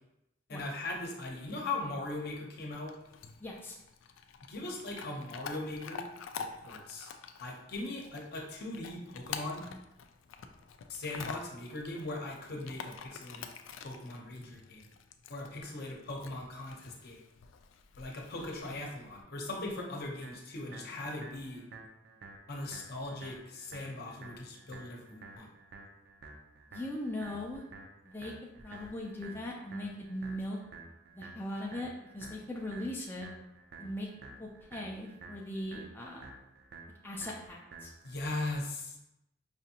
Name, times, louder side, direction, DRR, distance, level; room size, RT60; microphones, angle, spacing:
voice 1, 0.5-2.9 4.5-6.0 6.4-7.1 7.4-9.6 10.9-13.5 13.8-14.8 15.3-17.2 18.0-21.6 22.5-25.5 38.0-39.0, left 2 dB, 55° left, -1 dB, 0.8 m, -39 dB
Chewing mastication / Dog, 2.7-19.2, left 6 dB, 85° left, 0.3 m, -48 dB
voice 2, 3.4-3.8 26.7-27.6 28.1-30.6 31.1-33.3 33.8-34.1 34.4-36.3 37.0-37.9, left 1 dB, 10° left, -3 dB, 0.4 m, -39 dB
sound 1, 20.2-38.2, right 3 dB, 60° right, 0.5 m, -51 dB
4.9 x 2.6 x 2.8 m, 0.87 s
head